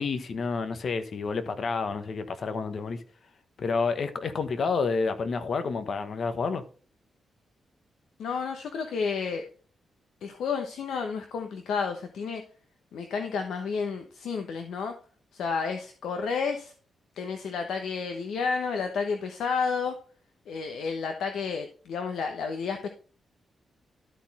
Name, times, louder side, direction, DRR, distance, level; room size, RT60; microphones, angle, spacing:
voice 1, 0.0-3.0 3.6-6.6, left 4 dB, 60° left, 1.2 m, -29 dB
voice 2, 8.2-9.4 10.2-12.4 12.9-14.9 15.3-16.7 17.1-20.0 20.5-22.9, left 5 dB, 85° left, 1.0 m, -31 dB
12.5 x 4.3 x 4.2 m
cardioid pair, 75°, 0 cm